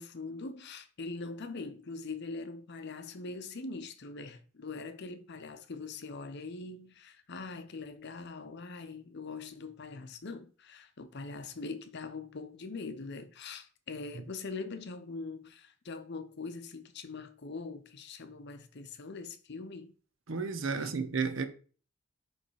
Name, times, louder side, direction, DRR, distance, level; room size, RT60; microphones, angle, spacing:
voice 1, 0.0-19.9 20.7-20.9, left 3 dB, 55° left, 0.7 m, -42 dB
voice 2, 20.3-21.5, right 5 dB, 65° right, 0.8 m, -32 dB
6.6 x 3.3 x 4.6 m
head